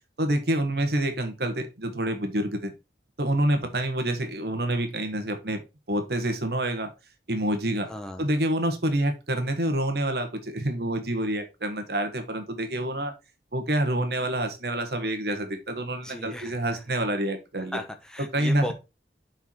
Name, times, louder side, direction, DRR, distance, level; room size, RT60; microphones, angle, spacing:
voice 1, 0.2-2.7 3.2-5.6 5.9-6.9 7.3-7.9 8.2-13.1 13.5-17.8 18.3-18.7, right 1 dB, 60° right, 6 dB, 1.5 m, -27 dB
voice 2, 7.8-8.3 16.0-16.8 17.7-18.7, left 1 dB, 5° left, 5 dB, 1.0 m, -36 dB
6.6 x 4.6 x 4.6 m, 0.27 s
head